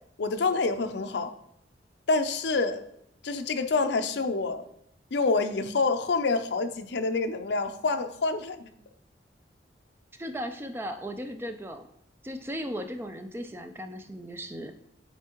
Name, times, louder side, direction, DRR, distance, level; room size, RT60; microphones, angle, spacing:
voice 1, 0.2-1.3 2.1-2.8 3.2-4.6 5.1-8.7, left 3 dB, 70° left, 9 dB, 0.5 m, -27 dB
voice 2, 10.2-11.8 12.2-14.7, equal, 15° right, 7 dB, 0.4 m, -36 dB
8.1 x 4.3 x 3.0 m, 0.75 s
head